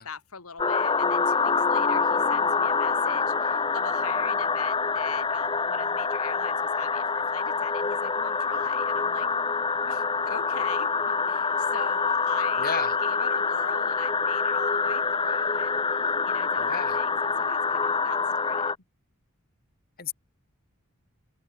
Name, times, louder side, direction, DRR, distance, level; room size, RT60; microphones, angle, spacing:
voice 1, 0.0-9.3 9.9-12.7 13.0-18.8, left 6 dB, 80° left, 2.0 m, -42 dB
sound 1, 0.6-18.8, left 4 dB, 20° left, 0.8 m, -26 dB
voice 2, 12.6-12.9 16.6-17.0 20.0-20.1, left 6 dB, 40° left, 2.3 m, -33 dB
head